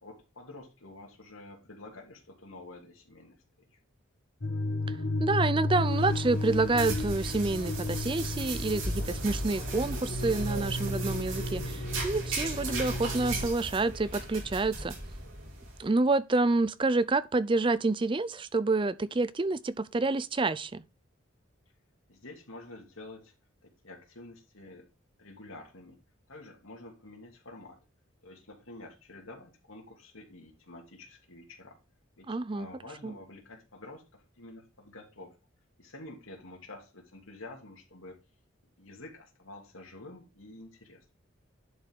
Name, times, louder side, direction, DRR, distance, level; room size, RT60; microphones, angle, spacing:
voice 1, 0.0-3.4 3.7-3.8 22.1-23.3 23.6-24.9 25.2-26.0 26.3-27.8 28.2-31.8 32.2-35.3 35.8-38.2 38.8-41.0, left 2 dB, 85° left, 2.6 m, -49 dB
sound 1, 4.4-13.5, left 2 dB, 55° left, 0.9 m, -33 dB
voice 2, 4.9-14.9 15.8-20.8 32.3-32.7 33.0-33.2, right 3 dB, 25° right, 0.4 m, -28 dB
sound 2, 5.8-15.8, right 2 dB, 75° right, 3.5 m, -37 dB
11.0 x 5.3 x 3.6 m
head